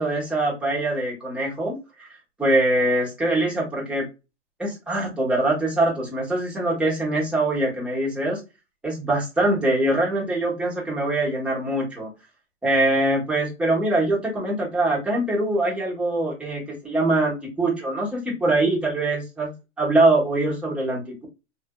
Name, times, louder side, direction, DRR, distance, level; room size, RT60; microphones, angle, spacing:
voice 1, 0.0-2.1 2.4-4.1 4.6-8.4 8.8-12.1 12.6-21.2, right 2 dB, 5° right, -5 dB, 1.1 m, -23 dB
3.3 x 2.6 x 2.2 m, 0.27 s
hypercardioid pair, 140°, 37 cm